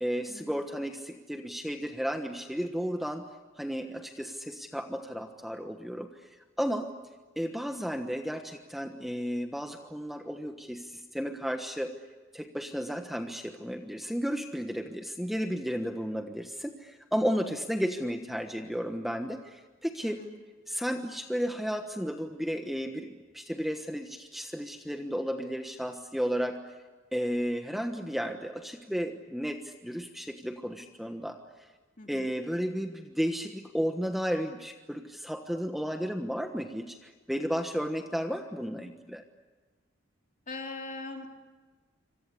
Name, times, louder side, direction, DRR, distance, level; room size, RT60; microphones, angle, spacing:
voice 1, 0.0-3.2 3.6-6.3 6.6-6.9 7.4-11.9 12.3-20.2 20.7-26.7 27.1-31.4 32.1-39.2, equal, ahead, 5 dB, 1.2 m, -33 dB
voice 2, 32.0-32.3 40.5-41.5, left 3 dB, 40° left, 2 dB, 3.5 m, -41 dB
27.0 x 26.0 x 8.5 m, 1.3 s
head